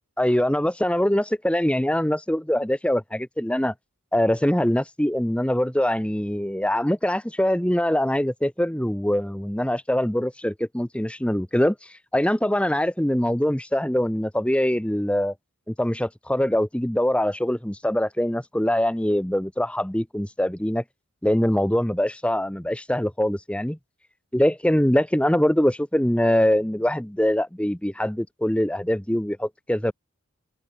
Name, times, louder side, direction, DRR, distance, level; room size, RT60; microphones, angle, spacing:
voice 1, 0.2-3.7 4.1-11.8 12.1-15.3 15.7-20.8 21.2-23.8 24.3-29.9, left 1 dB, 5° left, 0.9 m, -23 dB
open air
head